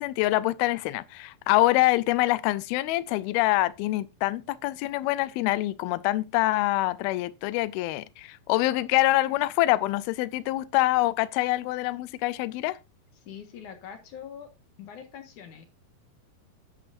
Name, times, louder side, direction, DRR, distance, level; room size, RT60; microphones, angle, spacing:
voice 1, 0.0-12.8, left 17 dB, 85° left, 2.5 m, -25 dB
voice 2, 13.3-14.5 14.8-15.7, left 8 dB, 60° left, 2.7 m, -43 dB
11.0 x 10.0 x 2.6 m
omnidirectional pair, 4.4 m